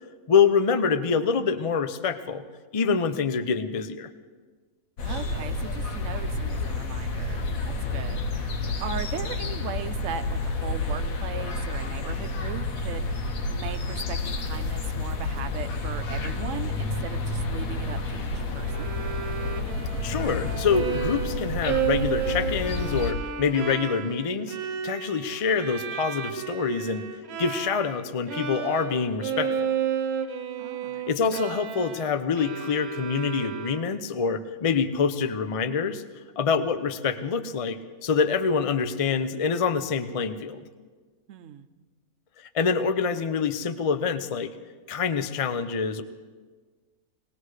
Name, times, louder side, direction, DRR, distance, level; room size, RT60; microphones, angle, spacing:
voice 1, 0.3-2.4 2.7-4.1 20.0-24.6 24.8-27.0 27.4-29.7 31.1-36.0 36.4-40.6 42.4-44.5 44.9-46.0, left 5 dB, 45° left, 10 dB, 0.4 m, -26 dB
sound 1, 5.0-23.1, left 2 dB, 75° left, 1.4 m, -30 dB
voice 2, 5.0-18.9 30.6-31.1 41.3-41.7, right 8 dB, 65° right, 9 dB, 1.0 m, -38 dB
Bowed string instrument, 18.7-28.0 28.3-34.1, right 7 dB, 80° right, 1.3 m, -32 dB
21.5 x 18.5 x 3.2 m, 1.5 s
omnidirectional pair, 1.5 m